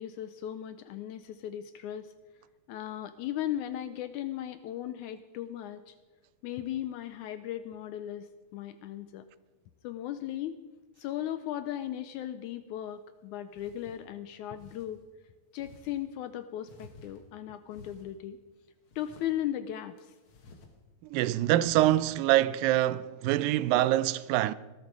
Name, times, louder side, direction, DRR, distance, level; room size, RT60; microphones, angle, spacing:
voice 1, 0.0-2.1 2.7-6.0 6.4-9.3 9.8-10.5 11.0-15.0 15.5-18.4 19.0-20.1, left 11 dB, 80° left, 1.8 m, -37 dB
sound 1, 12.9-13.0 13.5-14.0 14.5-14.9 15.6-16.0 16.6-17.4 17.7-18.1 18.9-19.3 20.0-20.7 21.0-21.1 21.6-22.1, left 3 dB, 50° left, 1.8 m, -53 dB
voice 2, 21.1-24.5, right 14 dB, 90° right, 2.3 m, -25 dB
19.5 x 12.5 x 4.7 m
omnidirectional pair, 3.9 m